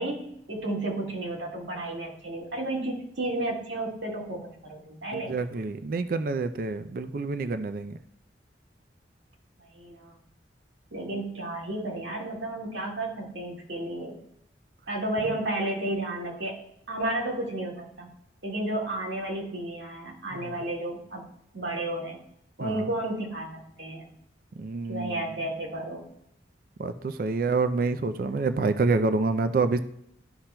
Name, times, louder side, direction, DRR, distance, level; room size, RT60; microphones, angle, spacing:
voice 1, 0.0-5.4 9.6-10.2 10.9-14.2 14.9-16.6 16.9-18.1 18.4-21.3 21.5-22.2 22.6-24.1 24.9-26.1, right 1 dB, 85° right, -2 dB, 1.9 m, -32 dB
voice 2, 5.1-8.0 20.3-20.6 22.6-22.9 24.6-25.2 26.8-29.8, right 3 dB, 50° right, 10 dB, 0.4 m, -27 dB
13.0 x 5.8 x 2.2 m, 0.76 s
head